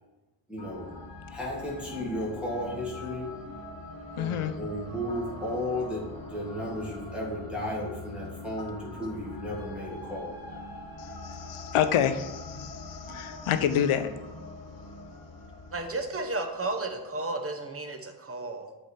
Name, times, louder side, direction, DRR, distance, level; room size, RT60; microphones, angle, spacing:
voice 1, 0.5-0.9 1.3-3.3 4.1-10.3, left 1 dB, ahead, -5 dB, 1.5 m, -34 dB
sound 1, 0.6-16.8, left 2 dB, 45° left, 1.3 m, -43 dB
voice 2, 4.2-4.5 11.0-14.1, left 9 dB, 85° left, 10 dB, 0.6 m, -28 dB
voice 3, 15.7-18.7, right 2 dB, 30° right, 5 dB, 0.8 m, -33 dB
7.7 x 3.3 x 4.3 m, 1.1 s
cardioid pair, 75°, 49 cm